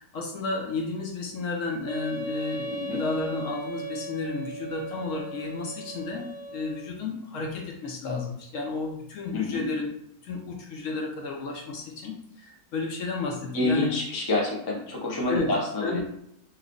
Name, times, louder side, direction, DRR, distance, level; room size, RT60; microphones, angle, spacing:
voice 1, 0.0-9.9 10.2-13.9 15.3-15.5 15.8-16.0, left 3 dB, 65° left, 0 dB, 0.9 m, -32 dB
Wind instrument woodwind instrument, 1.9-6.9, right 2 dB, 60° right, 1.0 m, -37 dB
voice 2, 2.7-3.0 9.3-9.6 13.5-16.0, left 2 dB, 30° left, -2 dB, 0.4 m, -27 dB
3.0 x 2.5 x 3.6 m, 0.74 s
omnidirectional pair, 1.6 m